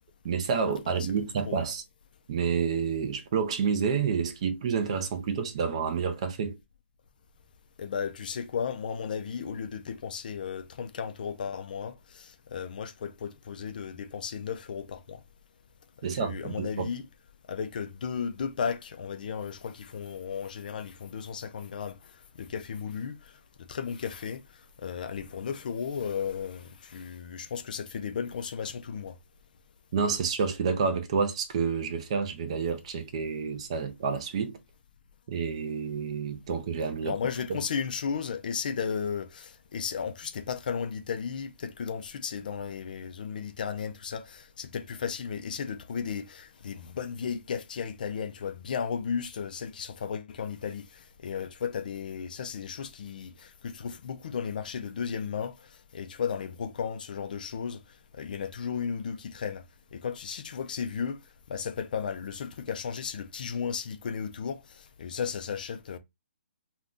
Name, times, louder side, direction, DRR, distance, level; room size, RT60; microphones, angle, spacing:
voice 1, 0.2-1.8 2.3-6.6 16.0-16.9 29.9-34.6 35.3-37.2 37.5-37.6, right 6 dB, 30° right, 0.4 m, -29 dB
voice 2, 7.8-15.2 16.1-17.0 17.5-29.2 37.0-57.8 58.1-59.6 59.9-61.2 61.5-66.0, left 6 dB, 40° left, 0.3 m, -35 dB
2.5 x 2.2 x 3.5 m
hypercardioid pair, 170°, 7 cm